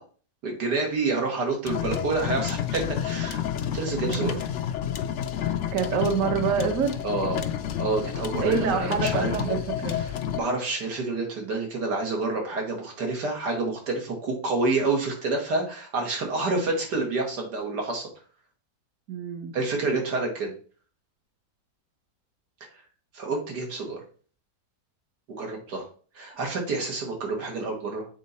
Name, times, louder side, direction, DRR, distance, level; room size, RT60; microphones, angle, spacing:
voice 1, 0.4-3.4 3.7-4.4 7.0-7.5 7.8-9.3 10.0-18.1 19.5-20.5 23.1-24.0 25.3-25.9 26.2-28.1, right 3 dB, 90° right, 1 dB, 2.3 m, -28 dB
sound 1, 1.6-10.4, left 9 dB, 65° left, 0.7 m, -30 dB
voice 2, 4.1-4.4 5.7-6.9 8.4-9.9 19.1-19.5, right 6 dB, 60° right, 6 dB, 1.2 m, -26 dB
7.5 x 4.0 x 4.2 m, 0.41 s
omnidirectional pair, 1.7 m